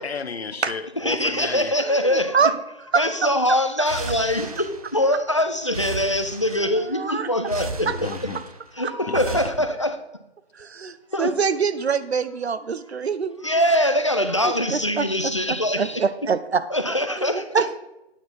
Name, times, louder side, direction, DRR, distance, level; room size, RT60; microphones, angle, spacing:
voice 1, 0.0-1.7 7.8-8.4 9.1-9.2, left 5 dB, 70° left, 11 dB, 0.8 m, -32 dB
voice 2, 1.0-2.5 2.9-7.9 8.7-10.0 11.1-11.3 13.4-16.0 16.7-17.7, left 1 dB, 30° left, 8 dB, 0.4 m, -23 dB
voice 3, 1.8-2.5 2.9-3.0 6.7-7.3 7.9-8.0 8.8-8.9 10.5-13.5 14.7-15.1 15.8-16.6 17.2-17.8, right 5 dB, 75° right, 13 dB, 0.7 m, -24 dB
sound 1, 3.9-5.3 5.6-6.9 7.4-8.7 9.1-9.5, right 3 dB, 35° right, 0.5 m, -34 dB
9.1 x 4.5 x 5.3 m, 0.89 s
figure-of-eight pair, 155°, 33 cm